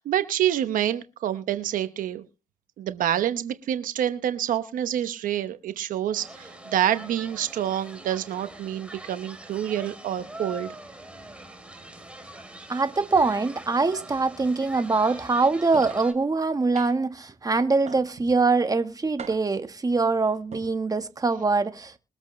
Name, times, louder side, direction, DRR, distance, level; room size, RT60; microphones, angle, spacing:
voice 1, 0.0-2.2 2.8-10.7, right 11 dB, 85° right, 1.0 m, -27 dB
sound 1, 6.1-16.1, right 1 dB, 10° right, 3.4 m, -43 dB
voice 2, 12.7-22.0, right 3 dB, 25° right, 1.4 m, -23 dB
sound 2, 15.7-16.0 16.7-17.2 17.9-18.4 19.2-19.7 20.4-20.7, right 6 dB, 55° right, 5.1 m, -40 dB
22.0 x 8.1 x 3.2 m
cardioid pair, 75°, 14 cm